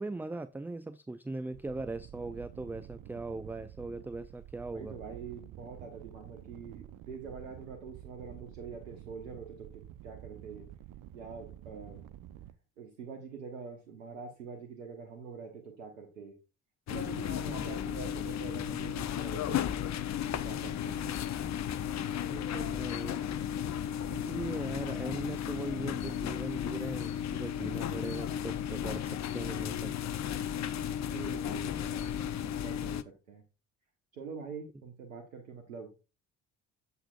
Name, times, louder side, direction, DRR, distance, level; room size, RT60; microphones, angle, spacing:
voice 1, 0.0-5.0 17.5-17.7 20.8-21.2 22.3-23.4 24.1-30.0, right 2 dB, 5° right, 0.3 m, -40 dB
sound 1, 1.5-12.5, right 12 dB, 55° right, 0.7 m, -49 dB
voice 2, 4.7-10.7 11.1-12.1 12.8-16.3 16.9-19.7 20.3-21.0 30.9-32.1 32.4-33.0 33.3-33.4 34.1-35.9, right 5 dB, 85° right, 1.2 m, -45 dB
sound 2, 16.9-33.0, left 9 dB, 45° left, 0.7 m, -34 dB
8.2 x 7.9 x 2.4 m
hypercardioid pair, 50°, 39 cm